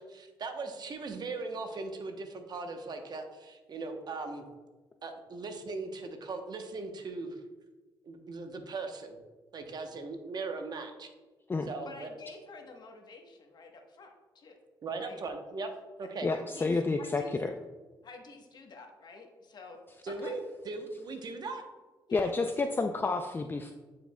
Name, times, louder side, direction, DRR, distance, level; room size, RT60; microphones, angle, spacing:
voice 1, 0.0-4.4 5.0-7.4 8.0-9.2 9.5-11.1 11.7-12.1 14.8-15.7 16.0-16.3 20.0-21.7, right 3 dB, 50° right, 5 dB, 0.8 m, -39 dB
voice 2, 11.8-14.6 15.0-15.2 16.0-17.5 18.0-19.8 20.1-20.4 22.1-22.2, left 3 dB, 55° left, 3 dB, 1.1 m, -49 dB
voice 3, 16.2-17.5 22.1-23.7, left 3 dB, 25° left, 6 dB, 0.4 m, -30 dB
8.9 x 4.8 x 2.2 m, 1.2 s
cardioid pair, 75°, 9 cm